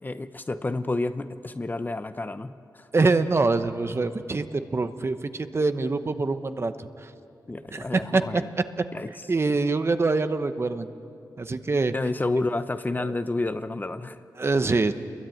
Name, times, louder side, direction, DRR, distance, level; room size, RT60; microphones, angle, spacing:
voice 1, 0.0-2.9 7.5-8.5 8.9-9.1 11.9-14.2, left 2 dB, 25° left, 11 dB, 0.7 m, -30 dB
voice 2, 2.9-6.7 7.0-7.1 7.7-8.4 9.3-10.9 11.4-11.9 13.0-13.1 14.4-14.9, right 3 dB, 35° right, 10 dB, 1.0 m, -24 dB
29.0 x 22.0 x 9.2 m, 2.7 s
wide cardioid pair, 120°, 7 cm